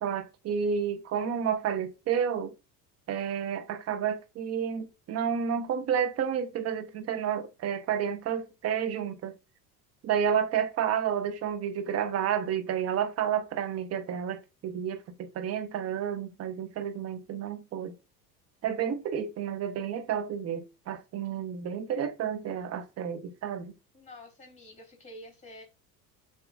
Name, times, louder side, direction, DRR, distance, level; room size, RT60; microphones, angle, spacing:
voice 1, 0.0-2.5 3.1-9.3 10.0-17.9 18.6-23.7, right 8 dB, 30° right, 0.8 m, -30 dB
voice 2, 23.9-25.6, left 1 dB, 15° left, 2.9 m, -48 dB
6.7 x 2.6 x 2.4 m
figure-of-eight pair, 70°, 49 cm